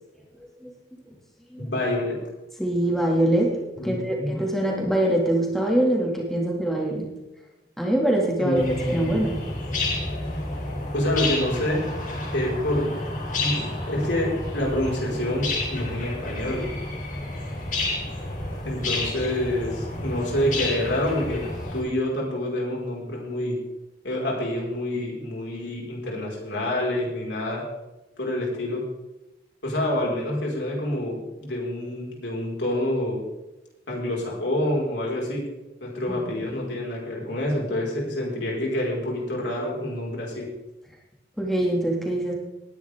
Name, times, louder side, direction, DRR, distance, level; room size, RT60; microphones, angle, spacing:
voice 1, 0.1-0.7 1.5-1.7 2.6-7.1 7.8-9.4 36.1-36.4 41.4-42.3, right 1 dB, ahead, -2 dB, 2.3 m, -24 dB
voice 2, 1.6-2.2 3.8-4.4 8.4-9.2 10.9-11.9 12.3-13.0 13.4-16.7 18.6-21.5 21.7-23.6 24.0-27.6 28.2-28.8 29.6-33.2 33.9-35.4 35.8-40.5, left 1 dB, 85° left, -2 dB, 5.1 m, -27 dB
sound 1, 8.5-21.8, left 2 dB, 45° left, 3.6 m, -30 dB
19.0 x 10.5 x 3.7 m, 1.0 s
head